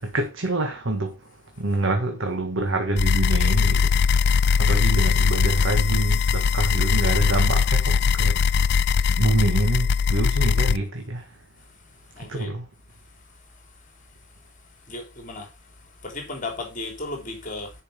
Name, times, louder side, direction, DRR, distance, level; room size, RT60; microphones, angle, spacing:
voice 1, 0.0-8.7 9.1-11.4 12.2-12.7, right 2 dB, 80° right, 1.5 m, -26 dB
sound 1, 3.0-10.8, left 6 dB, 60° left, 0.4 m, -20 dB
voice 2, 12.1-12.5 14.9-15.5 16.0-17.7, left 2 dB, 45° left, 3.2 m, -34 dB
10.5 x 5.4 x 5.1 m
head